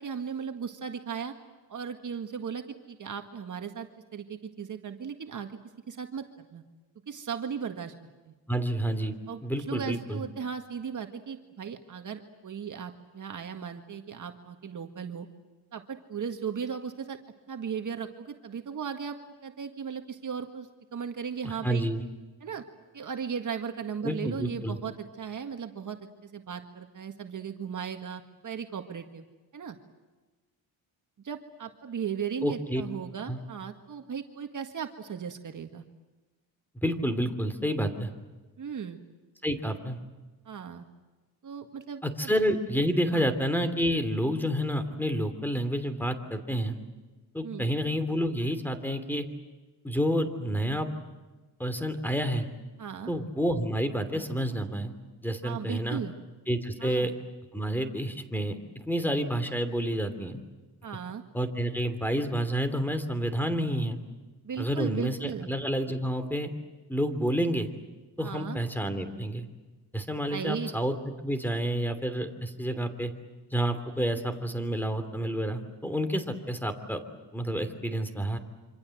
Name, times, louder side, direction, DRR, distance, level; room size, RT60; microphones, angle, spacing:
voice 1, 0.0-1.3 1.7-5.6 5.9-6.6 7.1-7.9 8.3-8.4 9.3-15.3 15.7-17.2 17.5-21.9 22.4-22.6 22.9-26.0 26.2-29.3 29.5-29.8 31.2-35.8 38.6-39.0 40.5-40.9 41.4-42.3 43.1-43.3 47.4-47.7 52.8-53.1 55.4-56.1 56.8-57.1 60.8-61.2 64.4-65.5 68.2-68.6 70.3-70.7, right 7 dB, 45° right, 6 dB, 1.9 m, -37 dB
voice 2, 8.5-9.1 9.4-10.2 21.4-22.0 24.0-24.8 32.4-32.8 33.3-33.4 36.8-38.1 39.4-40.0 42.0-46.8 47.3-49.2 49.8-50.9 51.6-52.5 53.1-54.9 55.2-56.0 56.5-57.1 57.5-60.4 61.3-64.0 64.6-66.5 66.9-67.7 68.2-69.5 69.9-70.9 71.2-73.1 73.5-77.0 77.3-78.4, equal, 5° left, 10 dB, 3.0 m, -29 dB
27.0 x 26.0 x 7.9 m, 1.2 s
cardioid pair, 90°, 41 cm